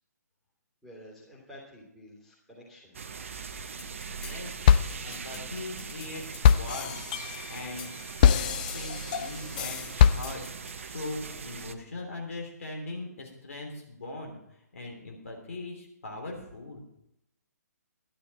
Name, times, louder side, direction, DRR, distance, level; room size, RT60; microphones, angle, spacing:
voice 1, 0.8-2.9, equal, ahead, -5 dB, 2.9 m, -50 dB
sound 1, 2.9-11.7, right 5 dB, 50° right, 0.8 m, -40 dB
sound 2, 3.8-4.3 4.7-10.7, left 9 dB, 30° left, 0.4 m, -24 dB
voice 2, 4.1-6.9 7.3-7.9 8.2-14.4 14.7-16.8, left 2 dB, 55° left, 1 dB, 3.3 m, -40 dB
11.5 x 11.5 x 4.4 m, 0.81 s
figure-of-eight pair, 135°, 9 cm